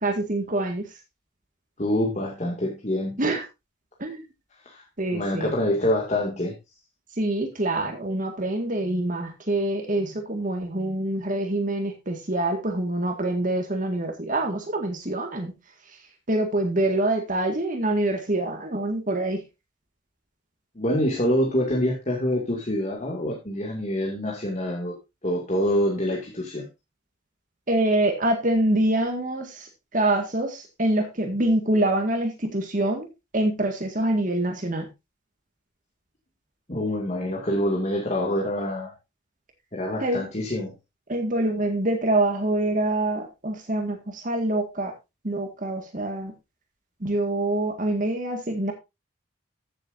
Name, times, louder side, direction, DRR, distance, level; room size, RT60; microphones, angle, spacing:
voice 1, 0.0-0.8 3.2-3.4 4.0-4.3 5.0-5.5 7.2-15.5 16.3-19.4 27.7-33.1 33.3-34.9 40.0-40.2 41.1-44.9 45.2-46.3 47.0-48.7, right 1 dB, 40° right, 4 dB, 1.9 m, -25 dB
voice 2, 1.8-3.2 4.7-4.8 5.1-6.5 20.8-25.0 25.2-26.7 36.7-38.9 39.7-40.7, left 1 dB, 35° left, -2 dB, 2.3 m, -26 dB
14.5 x 7.7 x 2.6 m, 0.23 s
head